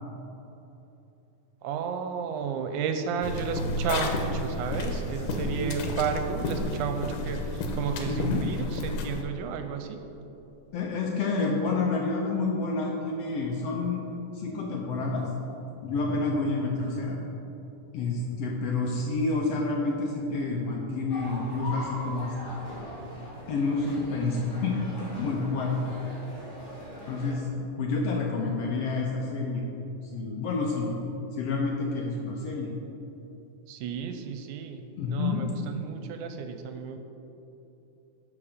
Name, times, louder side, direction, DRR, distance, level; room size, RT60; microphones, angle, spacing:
voice 1, 1.6-10.0 33.7-34.8 35.1-37.0, right 6 dB, 80° right, 6 dB, 2.0 m, -32 dB
sound 1, 3.2-9.2, left 2 dB, 85° left, 2.4 m, -31 dB
voice 2, 8.1-8.5 10.7-14.0 14.3-15.3 15.8-17.2 17.9-22.6 23.5-24.8 25.2-25.9 27.1-27.5 27.8-29.7 30.1-31.0 31.3-32.7 35.0-35.4, left 3 dB, 70° left, -1 dB, 1.7 m, -29 dB
sound 2, 21.1-27.3, equal, 20° left, 2.0 m, -41 dB
12.0 x 4.8 x 5.1 m, 2.9 s
omnidirectional pair, 3.6 m